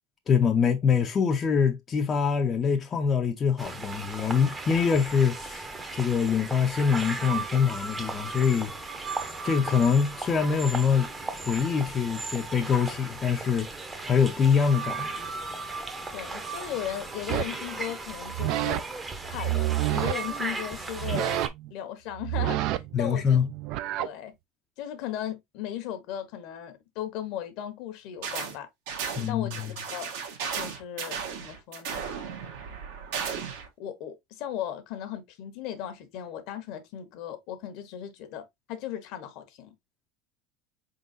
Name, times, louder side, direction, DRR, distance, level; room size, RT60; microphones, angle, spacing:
voice 1, 0.3-5.7 5.9-8.7 9.4-11.1 11.4-13.7 14.1-15.3 22.9-23.5 29.2-29.7, left 6 dB, 25° left, 0.5 m, -24 dB
sound 1, 3.6-21.5, right 3 dB, 15° right, 0.7 m, -36 dB
voice 2, 16.1-18.8 19.2-23.4 24.0-24.3 24.8-28.7 29.3-29.6 29.9-30.1 30.5-32.0 33.8-39.7, left 11 dB, 60° left, 1.0 m, -37 dB
sound 2, 17.3-17.6 18.2-18.8 19.2-20.1 20.9-21.7 22.1-24.1, right 15 dB, 55° right, 0.4 m, -29 dB
sound 3, 28.2-28.6 28.9-33.7, right 6 dB, 75° right, 1.4 m, -35 dB
4.5 x 3.8 x 2.5 m
supercardioid pair, 130°, 0 cm